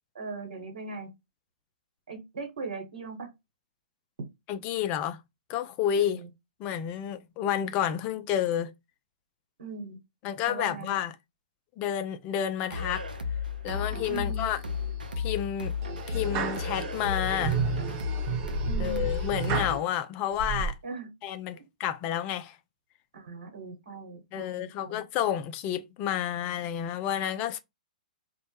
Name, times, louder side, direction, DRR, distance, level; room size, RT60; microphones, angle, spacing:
voice 1, 0.1-1.1 2.1-3.3 5.9-6.3 9.6-10.0 10.4-11.0 14.1-14.5 18.6-19.1 20.8-21.1 21.5-21.6 23.1-25.0, right 3 dB, 70° right, 1.1 m, -39 dB
voice 2, 4.5-5.2 5.5-6.2 6.6-8.7 10.2-11.1 11.8-13.1 13.6-14.6 15.2-15.7 16.1-17.6 18.8-20.7 21.2-22.6 24.3-27.6, left 10 dB, 35° left, 0.3 m, -30 dB
sound 1, 12.7-19.8, left 6 dB, 90° right, 0.4 m, -33 dB
sound 2, 13.7-14.4 14.8-15.2 15.8-19.8 20.3-20.7, right 7 dB, 40° right, 0.6 m, -32 dB
2.1 x 2.0 x 2.9 m
hypercardioid pair, 115°, 5 cm